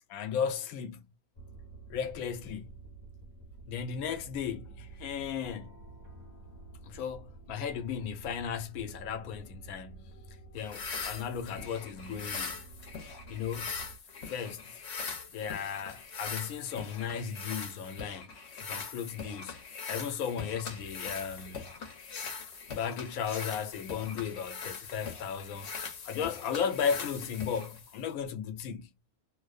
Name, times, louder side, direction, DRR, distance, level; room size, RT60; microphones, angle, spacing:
voice 1, 0.1-1.1 1.9-2.8 3.7-5.8 6.8-10.1 10.5-12.7 13.3-13.7 14.2-14.8 15.3-21.8 22.7-25.7 26.0-28.9, left 7 dB, 75° left, 1.0 m, -35 dB
sound 1, 1.3-14.0, right 3 dB, 35° left, 1.0 m, -50 dB
sound 2, 10.6-28.2, left 5 dB, 55° left, 0.9 m, -41 dB
2.6 x 2.0 x 2.3 m
omnidirectional pair, 1.5 m